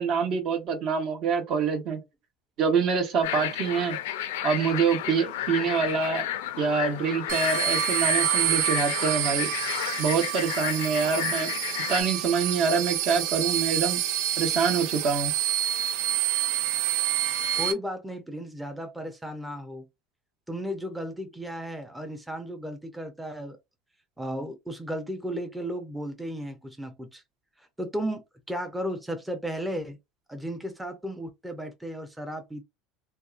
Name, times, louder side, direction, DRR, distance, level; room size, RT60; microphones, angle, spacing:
voice 1, 0.0-2.0 2.6-4.0 4.4-6.3 6.6-9.5 10.0-11.5 11.9-14.0 14.4-15.3, right 5 dB, 55° right, 0.9 m, -26 dB
sound 1, 3.2-12.0, left 12 dB, 85° left, 0.4 m, -32 dB
sound 2, 7.3-17.7, right 12 dB, 75° right, 0.4 m, -28 dB
voice 2, 17.5-19.9 20.5-23.6 24.2-27.2 27.8-30.0 30.3-32.6, equal, 5° right, 0.5 m, -34 dB
2.6 x 2.3 x 2.4 m
supercardioid pair, 100°, 0 cm